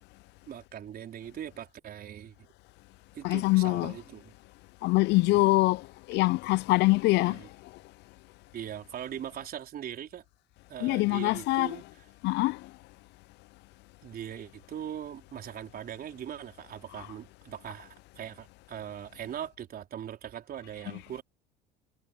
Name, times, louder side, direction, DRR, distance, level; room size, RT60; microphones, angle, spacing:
voice 1, 0.5-2.5 3.1-4.3 5.2-5.4 7.2-7.5 8.5-10.2 10.7-11.8 14.0-21.2, right 10 dB, 45° right, 4.4 m, -41 dB
voice 2, 3.2-3.9 4.8-7.4 10.8-11.7 12.2-12.6, left 21 dB, 55° left, 0.4 m, -24 dB
hypercardioid pair, 70°, 21 cm